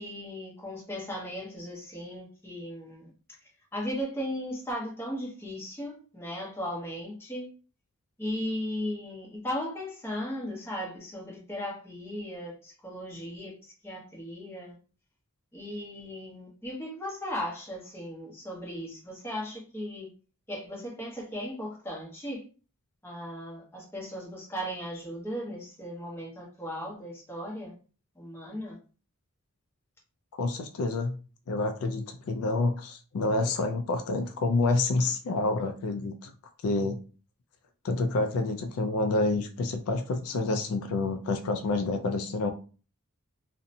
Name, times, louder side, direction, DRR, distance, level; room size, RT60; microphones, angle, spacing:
voice 1, 0.0-3.1 3.7-7.5 8.2-13.5 13.8-14.7 15.5-20.1 20.5-22.4 23.0-27.7 28.2-28.8 33.4-33.5, equal, 10° left, 0.8 m, -37 dB
voice 2, 30.4-31.2 31.5-36.3 36.6-37.0 37.8-42.5, left 2 dB, 75° left, 0.4 m, -28 dB
2.7 x 2.1 x 2.6 m
head